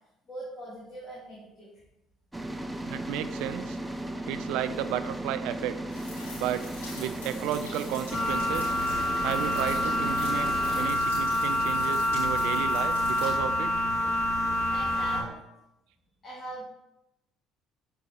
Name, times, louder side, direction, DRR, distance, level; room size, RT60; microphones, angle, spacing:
voice 1, 0.3-1.7 14.7-15.4 16.2-16.6, right 1 dB, 30° left, -6 dB, 2.1 m, -41 dB
sound 1, 2.3-10.9, right 1 dB, 10° right, 0.6 m, -36 dB
voice 2, 2.9-3.8 4.3-5.8 6.4-6.7 7.0-8.8 9.2-13.7, right 11 dB, 70° right, 12 dB, 0.4 m, -33 dB
sound 2, 5.9-13.3, left 3 dB, 80° left, 2.6 m, -45 dB
sound 3, 8.1-15.2, left 1 dB, 50° left, 1.9 m, -27 dB
6.8 x 4.8 x 4.3 m, 0.90 s
hypercardioid pair, 55°, 0 cm